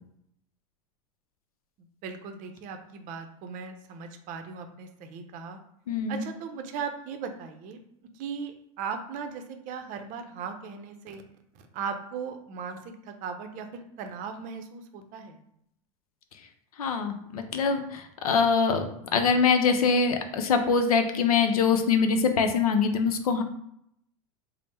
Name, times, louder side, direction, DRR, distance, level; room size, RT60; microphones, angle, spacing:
voice 1, 2.0-5.6 6.1-7.8 8.1-11.2 11.5-15.4, right 6 dB, 45° right, 6 dB, 0.6 m, -38 dB
voice 2, 5.9-6.2 16.8-18.8 19.1-23.4, left 5 dB, 90° left, 7 dB, 0.5 m, -24 dB
3.4 x 2.0 x 4.2 m, 0.73 s
hypercardioid pair, 105°, 18 cm